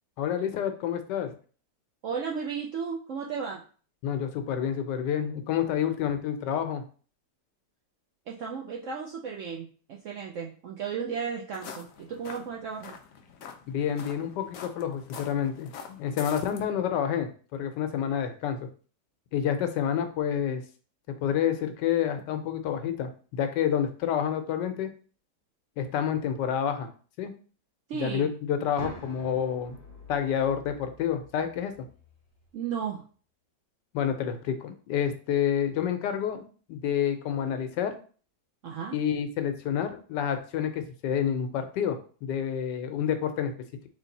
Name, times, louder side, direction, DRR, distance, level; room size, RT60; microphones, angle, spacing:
voice 1, 0.2-1.3 4.0-6.8 13.7-18.6 19.3-20.6 21.2-24.9 25.8-26.9 27.2-27.3 28.0-29.8 30.1-31.9 33.9-37.9 38.9-43.5, left 9 dB, 85° left, 8 dB, 1.2 m, -29 dB
voice 2, 2.0-3.6 8.3-12.9 27.9-28.3 32.5-33.0 38.6-39.0, right 6 dB, 75° right, -1 dB, 0.7 m, -34 dB
sound 1, 11.5-16.6, left 6 dB, 70° left, 0.8 m, -45 dB
sound 2, 28.8-32.7, right 1 dB, 10° left, 0.9 m, -47 dB
3.2 x 3.1 x 3.9 m, 0.41 s
omnidirectional pair, 1.8 m